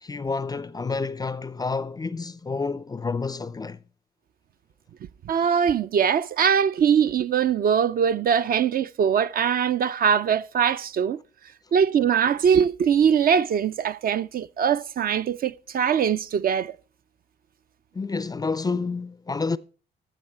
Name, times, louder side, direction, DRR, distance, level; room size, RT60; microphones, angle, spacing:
voice 1, 0.0-3.8 17.9-19.6, left 4 dB, 20° left, 0.4 m, -29 dB
voice 2, 5.2-11.2 11.7-16.8, right 7 dB, 50° right, 0.4 m, -22 dB
14.0 x 5.8 x 4.4 m
cardioid pair, 90°, 20 cm